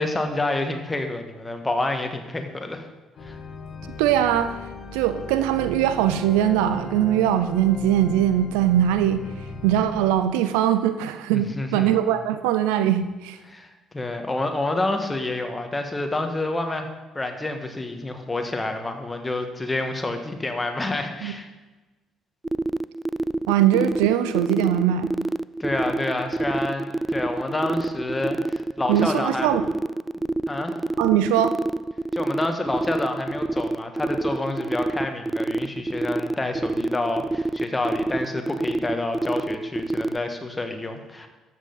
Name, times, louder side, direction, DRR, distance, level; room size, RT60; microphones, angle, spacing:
voice 1, 0.0-2.9 3.2-3.4 11.3-11.9 13.4-13.7 13.9-16.9 17.1-21.5 25.6-29.5 30.5-30.8 32.1-41.3, left 2 dB, 20° left, 5 dB, 1.6 m, -28 dB
sound 1, 3.2-10.1, left 3 dB, 50° left, 1.7 m, -38 dB
voice 2, 4.0-4.6 4.9-9.3 9.6-13.4 21.2-21.3 23.5-25.1 28.9-29.6 31.0-31.5, right 11 dB, 75° right, 11 dB, 0.5 m, -21 dB
sound 2, 22.4-40.2, right 2 dB, 15° right, 0.3 m, -26 dB
13.0 x 7.7 x 4.0 m, 1.2 s
hypercardioid pair, 50°, 0 cm